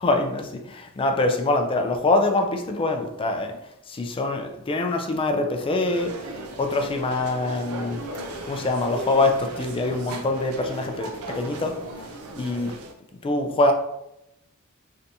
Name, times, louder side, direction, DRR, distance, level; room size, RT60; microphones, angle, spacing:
voice 1, 0.0-3.6 3.9-6.2 6.6-8.0 8.4-11.8 12.4-12.7 13.2-13.7, left 2 dB, 25° left, 4 dB, 0.3 m, -24 dB
sound 1, 5.8-12.9, right 2 dB, 85° right, 0.5 m, -37 dB
3.3 x 2.6 x 2.7 m, 0.84 s
head